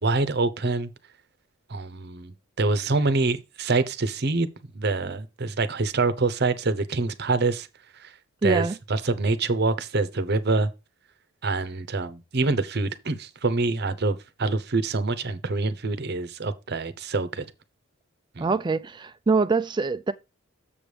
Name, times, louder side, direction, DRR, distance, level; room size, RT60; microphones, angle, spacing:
voice 1, 0.0-0.9 1.7-4.5 4.7-7.7 8.0-8.1 8.4-10.7 11.4-17.5 18.4-18.5, right 3 dB, 50° right, 0.8 m, -25 dB
voice 2, 8.4-8.8 18.4-20.1, right 4 dB, 20° right, 0.3 m, -24 dB
7.0 x 7.0 x 3.3 m
head